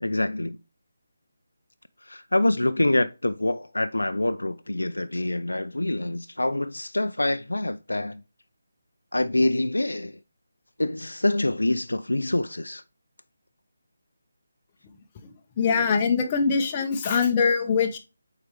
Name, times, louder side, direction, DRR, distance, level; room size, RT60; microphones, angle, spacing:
voice 1, 0.0-0.6 2.1-8.2 9.1-10.2 10.8-12.8, left 1 dB, 80° left, 0.5 m, -25 dB
voice 2, 15.6-18.0, left 5 dB, 25° left, 0.8 m, -22 dB
7.9 x 4.7 x 3.4 m
figure-of-eight pair, 155°, 0 cm